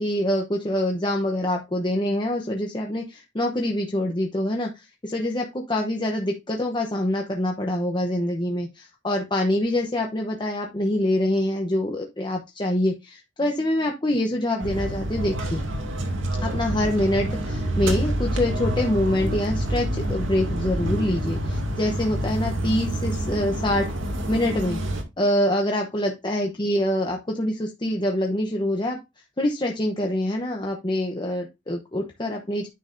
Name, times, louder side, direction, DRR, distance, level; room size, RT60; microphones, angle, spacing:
voice 1, 0.0-15.6 16.4-23.9 24.3-24.8 25.2-29.0 29.4-32.7, left 1 dB, 25° left, 1 dB, 0.9 m, -25 dB
sound 1, 14.6-25.0, right 1 dB, 85° right, 2.3 m, -27 dB
9.3 x 6.4 x 2.6 m, 0.23 s
head